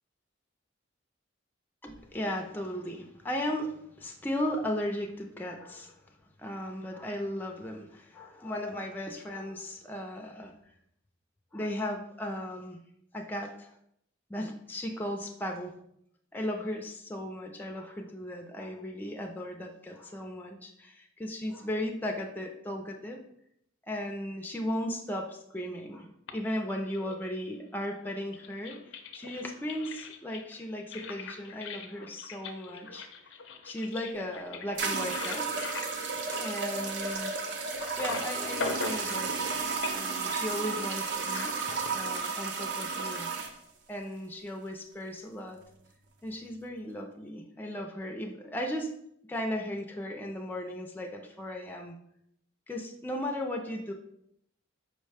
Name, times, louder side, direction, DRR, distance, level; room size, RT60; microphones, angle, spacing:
voice 1, 1.8-6.0 6.4-10.5 11.5-12.8 13.1-13.7 14.3-15.7 16.3-23.2 23.9-26.1 26.3-33.1 33.6-35.5 36.4-39.6 39.9-41.5 41.9-43.3 43.9-45.6 46.2-48.9 49.3-52.0 52.7-53.9, left 1 dB, 10° left, 2 dB, 0.4 m, -36 dB
sound 1, 26.3-27.6 28.2-37.5 37.8-39.6 39.8-40.2 41.3-41.9, left 4 dB, 70° left, 0.5 m, -41 dB
sound 2, 34.0-34.1 34.8-43.5, right 4 dB, 60° right, 0.5 m, -33 dB
5.0 x 2.1 x 4.8 m, 0.73 s
head